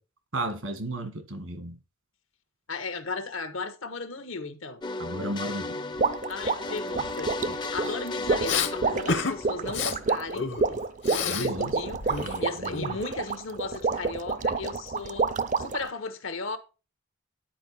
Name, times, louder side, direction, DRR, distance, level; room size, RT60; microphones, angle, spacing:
voice 1, 0.3-1.8 5.0-6.0 11.3-11.7, right 1 dB, 80° right, 1.8 m, -33 dB
voice 2, 2.7-4.8 6.3-10.5 11.1-16.6, left 4 dB, 75° left, 1.1 m, -36 dB
sound 1, 4.8-10.6, left 3 dB, 20° left, 0.5 m, -35 dB
sound 2, 6.0-15.9, right 4 dB, 35° right, 0.4 m, -29 dB
Respiratory sounds, 8.4-8.7 9.1-9.4 9.7-9.9 10.3-11.5 11.8-13.2, left 5 dB, 60° left, 1.0 m, -30 dB
10.0 x 4.7 x 4.8 m
head